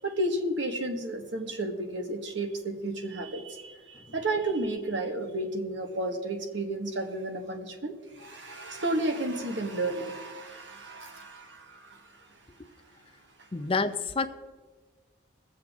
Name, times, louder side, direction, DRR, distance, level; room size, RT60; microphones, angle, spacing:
voice 1, 0.0-12.3, right 2 dB, 70° right, 4 dB, 1.5 m, -32 dB
voice 2, 13.5-14.3, left 4 dB, 30° left, 10 dB, 0.5 m, -28 dB
21.0 x 7.7 x 3.6 m, 1.4 s
head